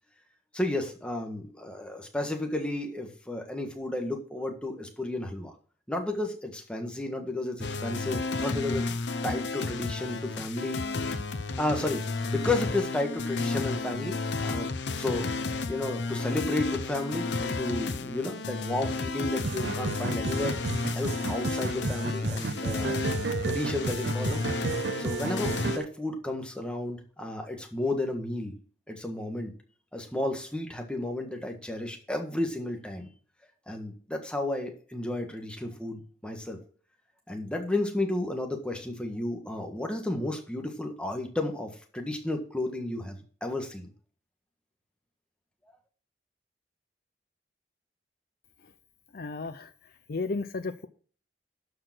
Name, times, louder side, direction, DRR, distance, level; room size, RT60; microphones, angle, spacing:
voice 1, 0.5-5.5 5.9-8.9 9.2-10.8 11.6-14.2 14.4-14.7 14.9-15.3 15.7-20.6 20.9-22.9 23.4-24.4 25.0-28.5 28.9-29.5 29.9-33.1 33.7-36.6 37.3-43.9, left 1 dB, 5° left, 3 dB, 1.6 m, -32 dB
sound 1, 7.6-25.8, left 3 dB, 85° left, 0.9 m, -32 dB
sound 2, 19.4-25.9, right 4 dB, 70° right, 0.6 m, -33 dB
voice 2, 49.1-49.7 50.1-50.9, left 3 dB, 55° left, 12 dB, 0.5 m, -33 dB
12.5 x 4.9 x 6.0 m, 0.43 s
head